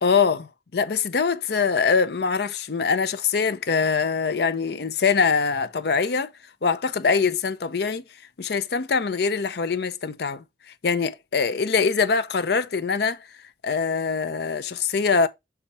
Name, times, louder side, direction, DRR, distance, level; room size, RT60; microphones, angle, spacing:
voice 1, 0.0-6.3 6.6-8.0 8.4-10.4 10.8-13.2 13.6-15.3, left 5 dB, 60° left, 0.6 m, -23 dB
6.7 x 3.6 x 4.1 m
head